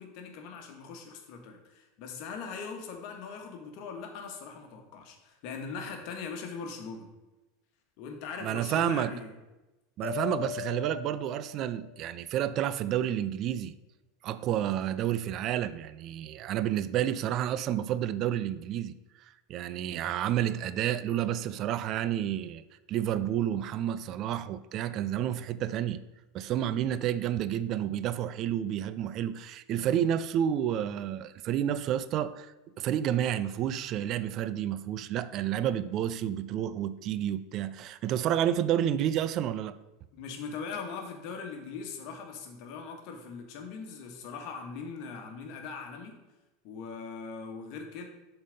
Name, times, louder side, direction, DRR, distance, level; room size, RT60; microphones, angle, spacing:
voice 1, 0.0-7.1 8.0-9.3 40.1-46.1 46.6-48.1, left 5 dB, 60° left, 1.3 m, -40 dB
voice 2, 8.4-9.1 10.0-13.7 14.2-18.9 19.5-22.6 22.9-26.0 26.3-32.5 32.8-39.7, right 11 dB, 50° right, 0.4 m, -30 dB
Mallet percussion, 10.0-12.1, left 13 dB, 90° left, 0.8 m, -39 dB
7.3 x 4.0 x 5.2 m
hypercardioid pair, 105°, 0 cm